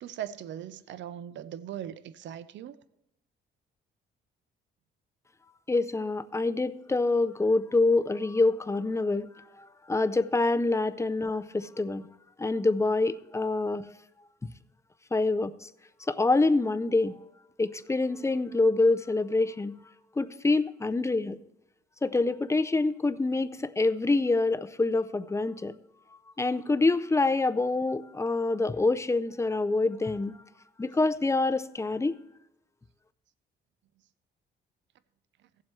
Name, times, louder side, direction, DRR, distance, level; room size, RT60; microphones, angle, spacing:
voice 1, 0.0-2.8, right 10 dB, 65° right, 0.6 m, -39 dB
voice 2, 5.7-9.3 9.6-12.1 12.4-13.9 15.1-15.5 16.1-17.1 17.6-19.8 20.2-21.4 22.0-25.8 26.4-30.4 30.8-32.1, left 3 dB, 15° left, 0.5 m, -26 dB
16.5 x 7.4 x 3.2 m
cardioid pair, 90°, 20 cm